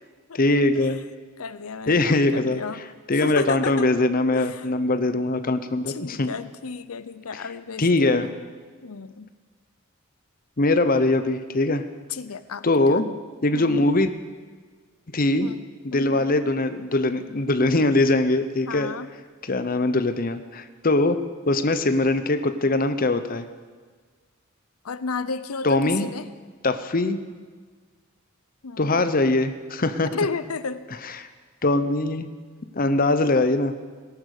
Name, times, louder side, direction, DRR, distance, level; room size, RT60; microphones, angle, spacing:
voice 1, 0.3-1.0 1.9-6.3 7.3-7.5 7.8-8.3 10.6-11.9 12.6-13.1 13.4-14.1 15.1-15.5 15.8-18.9 19.4-21.2 21.5-23.5 25.6-26.1 26.6-27.2 28.8-30.1 31.0-31.3 31.6-32.3 32.7-33.7, left 2 dB, 40° left, 10 dB, 0.8 m, -22 dB
voice 2, 1.4-2.8 3.2-3.9 4.3-4.8 5.9-8.3 8.8-9.3 12.1-13.2 13.5-13.9 15.4-16.3 18.7-19.1 24.8-26.3 28.6-29.0 30.1-30.9, left 4 dB, 90° left, 14 dB, 0.7 m, -33 dB
18.5 x 11.5 x 6.7 m, 1.5 s
head